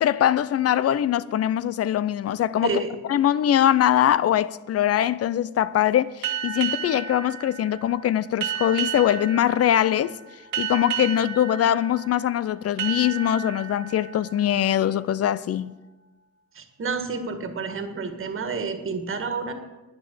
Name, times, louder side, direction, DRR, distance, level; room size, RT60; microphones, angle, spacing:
voice 1, 0.0-2.7 3.1-10.2 10.6-15.7, left 11 dB, 55° left, 0.5 m, -22 dB
sound 1, 6.2-15.5, right 9 dB, 90° right, 1.7 m, -33 dB
voice 2, 16.5-19.5, right 4 dB, 45° right, 1.7 m, -29 dB
11.0 x 9.7 x 7.0 m
cardioid pair, 105°, 30 cm